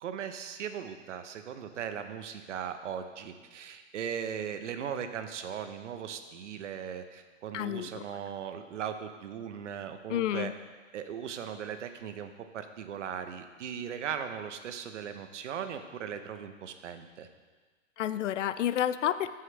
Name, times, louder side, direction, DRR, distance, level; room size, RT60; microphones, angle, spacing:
voice 1, 0.0-10.5 10.9-17.3, right 8 dB, 65° right, 8 dB, 0.9 m, -38 dB
voice 2, 7.5-8.0 10.1-10.5 18.0-19.3, left 11 dB, 70° left, 14 dB, 0.5 m, -30 dB
14.0 x 5.7 x 3.3 m, 1.4 s
hypercardioid pair, 155°, 39 cm